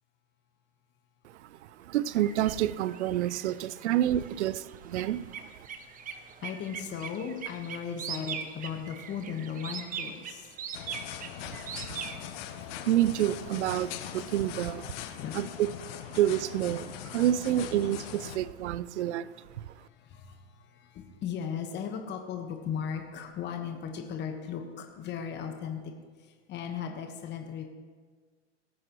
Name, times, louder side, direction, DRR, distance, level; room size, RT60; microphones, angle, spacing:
voice 1, 1.4-5.7 11.5-15.7 16.1-19.3 19.6-19.7, right 12 dB, 70° right, 0.6 m, -29 dB
sound 1, 2.1-12.2, right 8 dB, 25° right, 0.8 m, -42 dB
voice 2, 5.6-10.5 15.1-15.6 17.1-17.2 19.5-25.9 26.2-27.6, left 7 dB, 30° left, 1.3 m, -37 dB
sound 2, 10.7-18.4, left 11 dB, 55° left, 1.0 m, -41 dB
18.5 x 9.3 x 3.1 m
hypercardioid pair, 110°, 36 cm